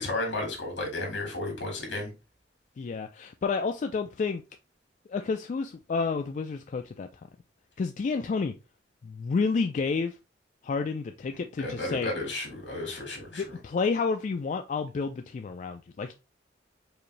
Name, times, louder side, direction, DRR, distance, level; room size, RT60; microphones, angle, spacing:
voice 1, 0.0-2.1 11.6-13.4, left 2 dB, 75° left, 1.7 m, -33 dB
voice 2, 2.8-4.4 5.1-7.1 7.8-8.5 9.0-10.2 10.6-12.1 13.3-16.1, left 4 dB, 40° left, 0.3 m, -30 dB
4.8 x 2.6 x 3.1 m
head